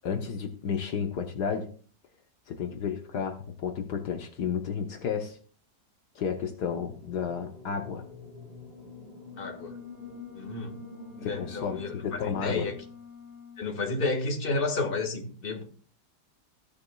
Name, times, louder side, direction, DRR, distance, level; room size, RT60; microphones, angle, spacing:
voice 1, 0.0-1.7 2.5-5.4 6.1-8.0 11.2-12.7, left 7 dB, 70° left, 5 dB, 1.6 m, -32 dB
sound 1, 6.9-13.0, left 2 dB, 35° right, 4.6 m, -48 dB
sound 2, 9.2-13.7, left 7 dB, 75° right, 4.2 m, -48 dB
voice 2, 9.4-9.8 10.3-10.8 11.2-12.7 13.6-15.6, left 3 dB, 35° left, 4 dB, 1.9 m, -31 dB
15.5 x 10.0 x 2.3 m, 0.43 s
omnidirectional pair, 1.8 m